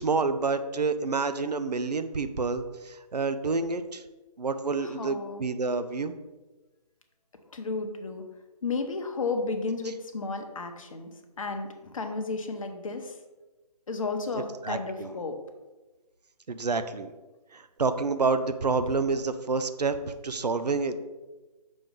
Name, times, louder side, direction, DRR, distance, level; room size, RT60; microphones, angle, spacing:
voice 1, 0.0-4.0 4.4-6.2 14.6-15.2 16.5-17.1 17.5-21.0, right 4 dB, 80° right, 10 dB, 0.6 m, -28 dB
voice 2, 4.8-5.4 7.5-8.2 8.6-11.1 11.4-13.2 13.9-15.4, left 3 dB, 55° left, 5 dB, 0.9 m, -33 dB
6.2 x 3.1 x 5.1 m, 1.2 s
figure-of-eight pair, 145°, 21 cm